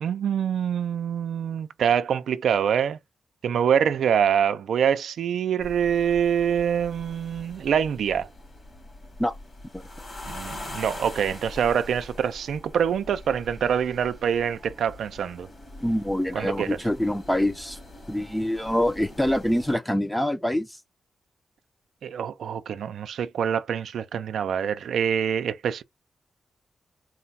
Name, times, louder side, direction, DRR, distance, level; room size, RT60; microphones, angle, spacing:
voice 1, 0.0-3.0 3.4-8.3 10.3-15.5 16.3-16.8 22.0-25.8, right 8 dB, 85° right, 0.5 m, -25 dB
sound 1, 5.6-19.8, left 1 dB, 40° left, 2.8 m, -43 dB
voice 2, 15.8-17.8 18.1-20.7, left 1 dB, 5° left, 0.7 m, -25 dB
4.0 x 2.3 x 4.1 m
cardioid pair, 80°, 0 cm